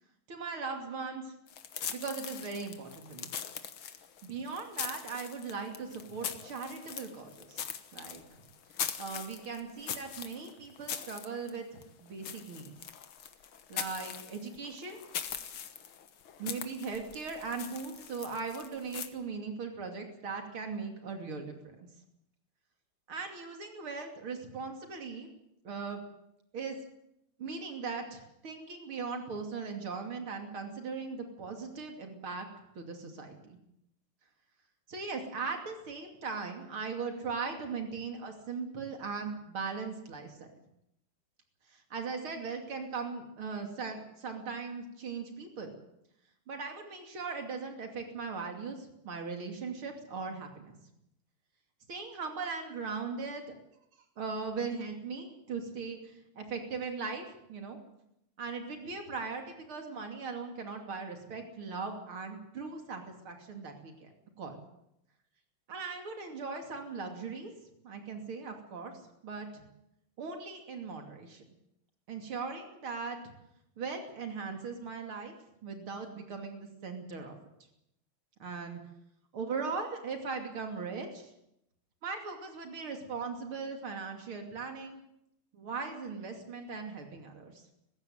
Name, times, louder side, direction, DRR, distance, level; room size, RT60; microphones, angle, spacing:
voice 1, 0.3-1.3 1.9-3.3 4.2-7.6 7.9-8.2 9.0-12.7 13.7-15.0 16.4-21.9 23.1-25.3 25.6-26.0 26.5-26.8 27.4-32.5 32.7-33.6 34.9-40.5 41.7-45.7 46.5-50.8 51.9-53.5 54.2-57.8 58.4-64.1 64.4-64.6 65.7-67.5 67.8-69.6 70.2-71.4 72.1-73.3 73.8-75.4 75.6-77.4 78.4-78.8 79.3-81.3 82.0-85.0 85.5-87.7, right 4 dB, 85° right, 4 dB, 3.6 m, -39 dB
sound 1, 1.5-19.1, left 8 dB, 80° left, 2.2 m, -42 dB
21.0 x 15.5 x 9.2 m, 0.79 s
omnidirectional pair, 2.3 m